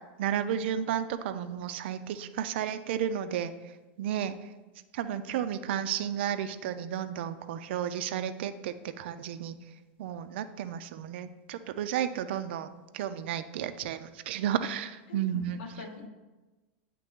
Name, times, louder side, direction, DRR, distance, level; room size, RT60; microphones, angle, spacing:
voice 1, 0.2-4.4 4.9-9.6 10.0-15.6, right 9 dB, 70° right, 11 dB, 0.4 m, -33 dB
voice 2, 15.1-16.1, left 4 dB, 70° left, 1 dB, 1.0 m, -44 dB
9.1 x 3.3 x 3.5 m, 1.2 s
supercardioid pair, 150°, 6 cm